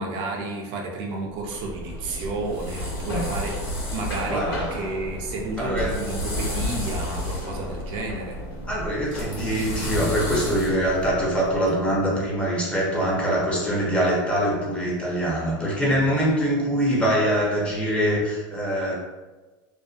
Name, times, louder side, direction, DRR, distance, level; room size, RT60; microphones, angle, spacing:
voice 1, 0.0-8.4 15.8-16.1, right 3 dB, 55° right, 0 dB, 0.5 m, -32 dB
sound 1, 1.4-11.7, left 1 dB, 90° left, 1.1 m, -31 dB
voice 2, 4.3-4.8 5.6-6.0 8.6-18.9, equal, 10° left, -5 dB, 0.7 m, -24 dB
2.5 x 2.1 x 2.4 m, 1.2 s
supercardioid pair, 120°, 12 cm